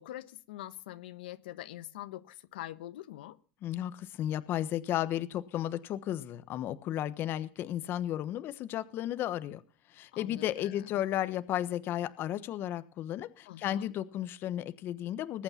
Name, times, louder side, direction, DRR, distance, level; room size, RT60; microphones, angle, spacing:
voice 1, 0.0-3.4 10.1-10.9 13.4-13.9, left 14 dB, 90° left, 1.2 m, -44 dB
voice 2, 3.6-9.6 9.9-15.4, left 12 dB, 45° left, 1.2 m, -34 dB
21.0 x 8.8 x 5.9 m
supercardioid pair, 125°, 5 cm